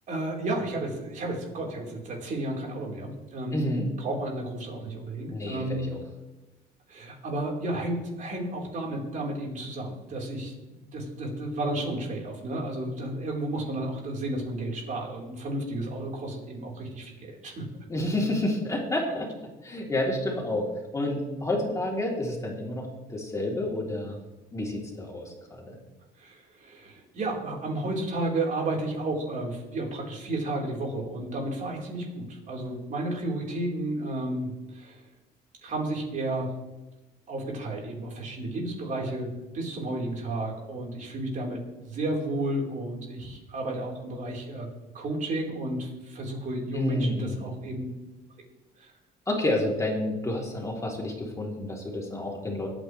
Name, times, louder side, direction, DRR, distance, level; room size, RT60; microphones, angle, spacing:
voice 1, 0.1-3.7 4.0-5.9 6.9-10.5 10.8-17.7 26.2-35.0 35.6-36.6 37.3-44.7 44.9-47.8 48.8-48.9, right 1 dB, 50° right, -1 dB, 4.5 m, -32 dB
voice 2, 3.5-3.9 5.3-6.0 17.9-19.3 19.6-20.7 20.9-24.2 24.5-25.7 46.7-47.6 49.3-52.7, left 1 dB, 20° left, -1 dB, 3.5 m, -29 dB
23.5 x 8.9 x 3.4 m, 1.1 s
cardioid pair, 110°, 17 cm